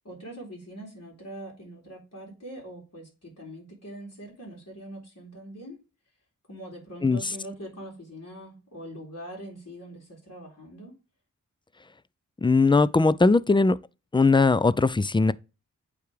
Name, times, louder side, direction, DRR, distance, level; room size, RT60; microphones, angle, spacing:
voice 1, 0.0-5.8 6.5-10.9, right 1 dB, 50° left, 3.1 m, -42 dB
voice 2, 12.4-13.8 14.1-15.3, left 3 dB, 15° left, 0.4 m, -20 dB
8.3 x 3.5 x 4.8 m
cardioid pair, 45°, 33 cm